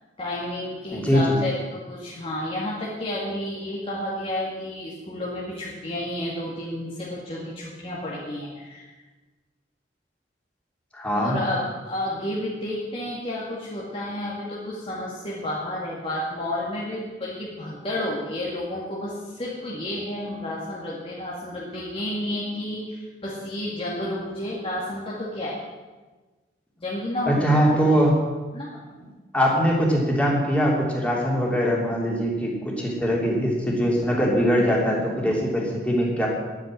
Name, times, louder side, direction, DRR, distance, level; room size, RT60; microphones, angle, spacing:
voice 1, 0.2-8.9 11.1-25.6 26.8-27.8 28.5-28.7, left 1 dB, 35° left, -6 dB, 2.3 m, -31 dB
voice 2, 0.9-1.4 10.9-11.4 27.3-28.2 29.3-36.3, equal, 5° left, -3 dB, 3.0 m, -22 dB
11.5 x 9.6 x 7.6 m, 1.3 s
head